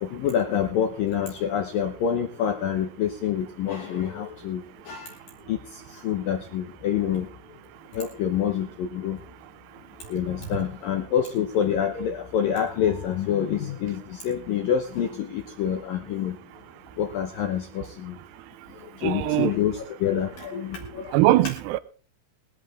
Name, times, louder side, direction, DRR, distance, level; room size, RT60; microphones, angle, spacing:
voice 1, 0.0-5.1 5.5-5.6 6.0-7.3 7.9-9.2 10.1-16.4 17.0-18.2 19.0-21.1, left 9 dB, 80° left, 2.0 m, -27 dB
voice 2, 19.0-19.5 21.1-21.8, right 16 dB, 80° right, 2.4 m, -21 dB
20.5 x 11.0 x 3.6 m
omnidirectional pair, 5.7 m